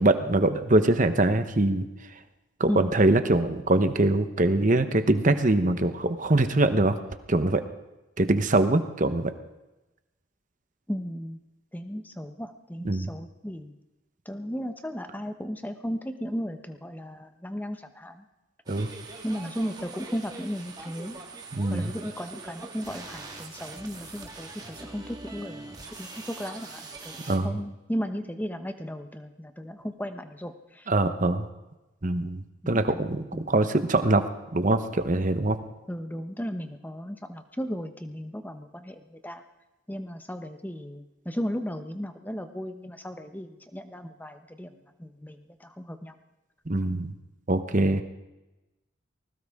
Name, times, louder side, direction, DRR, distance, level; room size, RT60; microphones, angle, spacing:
voice 1, 0.0-1.8 2.6-7.0 7.3-7.6 8.2-9.3 12.8-13.1 18.7-18.9 21.5-21.9 27.3-27.6 30.9-31.4 32.0-34.2 34.5-35.6 46.7-47.1 47.5-48.0, right 2 dB, 40° right, 9 dB, 1.0 m, -23 dB
voice 2, 10.9-11.4 11.7-13.8 14.3-18.2 19.2-21.2 21.7-30.9 32.6-33.0 33.3-33.5 35.9-39.4 39.9-46.2, equal, 10° left, 8 dB, 0.9 m, -35 dB
sound 1, 18.7-27.4, right 3 dB, 20° right, 1.8 m, -43 dB
20.0 x 18.0 x 3.7 m, 1.0 s
head